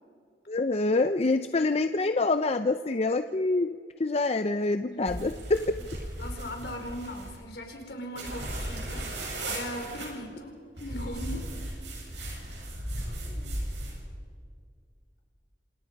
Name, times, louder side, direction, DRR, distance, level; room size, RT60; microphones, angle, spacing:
voice 1, 0.5-5.8, left 3 dB, 35° left, 9 dB, 0.5 m, -26 dB
sound 1, 5.1-7.4 8.1-10.1 10.8-14.0, right 1 dB, 90° right, 7.9 m, -36 dB
voice 2, 6.2-9.1 9.4-11.5 12.1-12.7 13.0-13.7, equal, 65° left, 3 dB, 4.7 m, -40 dB
29.0 x 27.0 x 5.3 m, 2.2 s
head